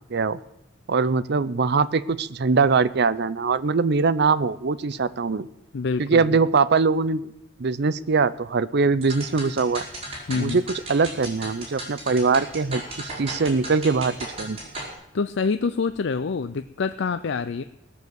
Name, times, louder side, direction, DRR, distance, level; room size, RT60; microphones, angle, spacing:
voice 1, 0.9-5.5 6.0-7.3 7.6-9.9 10.3-14.6, right 4 dB, 55° right, 15 dB, 0.6 m, -22 dB
voice 2, 5.7-6.4 10.3-10.6 15.1-17.6, left 4 dB, 65° left, 10 dB, 0.5 m, -26 dB
sound 1, 9.0-14.9, right 1 dB, 30° right, 4.9 m, -36 dB
18.0 x 7.0 x 8.0 m, 0.85 s
head